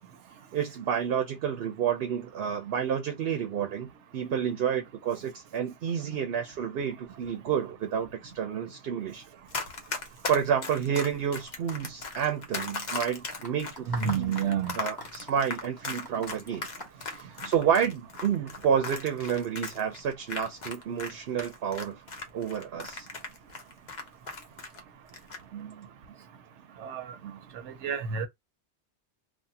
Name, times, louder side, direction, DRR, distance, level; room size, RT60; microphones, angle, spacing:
voice 1, 0.5-9.2 10.3-14.4 14.8-16.7 17.0-22.0 22.3-23.1, right 8 dB, 65° right, 0.8 m, -30 dB
Run, 9.5-21.1 21.4-24.8 25.1-25.4, left 4 dB, 45° left, 0.8 m, -37 dB
sound 1, 13.4-17.8, left 1 dB, 20° left, 1.0 m, -43 dB
voice 2, 13.9-14.8 25.5-25.7 26.8-27.0 27.8-28.3, right 7 dB, 85° right, 1.0 m, -29 dB
3.5 x 2.2 x 2.7 m
omnidirectional pair, 1.2 m